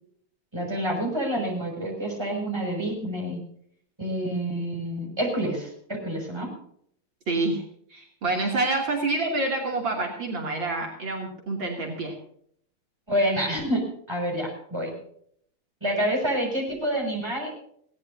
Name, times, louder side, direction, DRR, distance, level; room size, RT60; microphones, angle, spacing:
voice 1, 0.5-3.4 4.0-6.5 13.1-13.8 14.1-14.9 15.8-17.5, equal, 10° right, 1 dB, 5.9 m, -28 dB
voice 2, 7.3-7.6 7.9-12.1, right 2 dB, 60° right, 0 dB, 3.5 m, -27 dB
20.0 x 17.5 x 2.7 m, 0.65 s
omnidirectional pair, 2.3 m